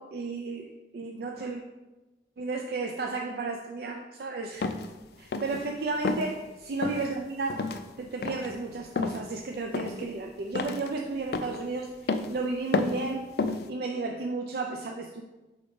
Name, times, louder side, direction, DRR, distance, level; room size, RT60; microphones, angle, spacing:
voice 1, 0.0-1.6 2.4-4.7 5.2-6.4 6.7-7.6 8.0-13.3 13.7-15.2, right 3 dB, 55° right, 2 dB, 0.4 m, -33 dB
sound 1, 4.6-4.9 5.3-5.6 6.0-6.3 6.8-7.1 7.5-7.8 8.2-8.5 9.0-9.2 9.7-10.1 10.6-10.9 11.3-11.6 12.1-12.3 12.7-13.1 13.4-13.7, left 3 dB, 60° left, 0.4 m, -30 dB
4.8 x 3.8 x 5.1 m, 1.1 s
head